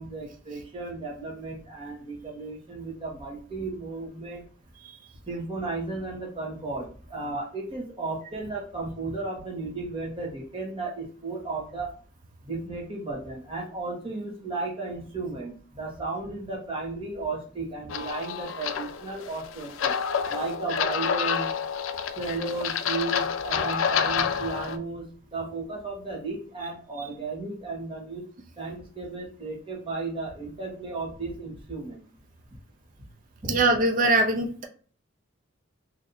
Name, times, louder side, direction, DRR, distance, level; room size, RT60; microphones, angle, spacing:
voice 1, 0.0-4.4 5.3-11.9 12.4-20.0 20.3-21.5 22.2-25.0 25.3-28.2 28.6-32.0 33.4-33.6, right 3 dB, 25° right, -2 dB, 1.3 m, -34 dB
sound 1, 17.9-24.8, left 7 dB, 75° left, 0.4 m, -28 dB
voice 2, 33.5-34.6, right 2 dB, 40° right, 3 dB, 0.6 m, -23 dB
3.1 x 2.7 x 3.9 m, 0.41 s
head